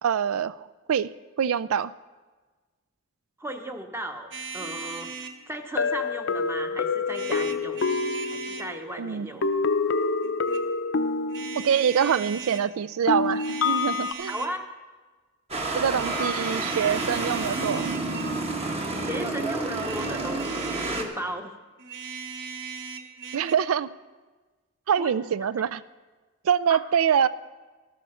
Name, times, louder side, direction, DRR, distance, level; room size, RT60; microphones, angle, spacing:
voice 1, 0.0-1.1 1.4-1.9 9.0-9.3 11.6-14.3 15.7-17.9 23.3-23.9 24.9-25.8 26.4-27.3, right 8 dB, 80° right, 18 dB, 0.4 m, -25 dB
voice 2, 3.4-5.1 5.5-7.9 8.3-9.5 14.2-14.7 19.0-21.6 25.0-25.1 25.6-25.7 26.7-26.8, right 1 dB, 10° right, 5 dB, 0.8 m, -35 dB
sound 1, 4.3-5.4 7.1-8.7 10.2-10.6 11.3-12.7 13.2-14.6 15.9-18.4 19.7-21.1 21.8-23.5, right 5 dB, 60° right, 0.9 m, -38 dB
sound 2, 4.6-4.7 5.8-8.9 9.4-12.0 13.1-14.1, left 4 dB, 60° left, 0.6 m, -27 dB
sound 3, 15.5-21.0, right 2 dB, 30° right, 1.2 m, -29 dB
13.0 x 13.0 x 4.3 m, 1.3 s
head